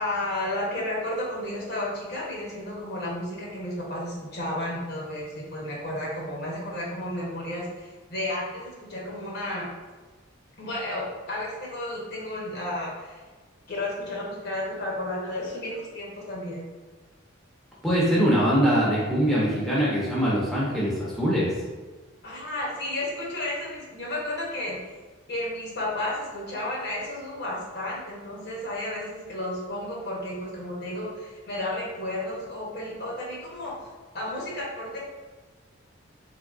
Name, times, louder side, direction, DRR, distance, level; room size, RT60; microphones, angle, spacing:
voice 1, 0.0-9.7 10.6-13.1 13.7-16.7 22.2-24.8 25.3-33.7 34.1-35.0, left 1 dB, 55° left, -4 dB, 0.8 m, -32 dB
voice 2, 17.8-21.5, equal, ahead, -7 dB, 0.7 m, -23 dB
3.5 x 3.1 x 2.4 m, 1.3 s
head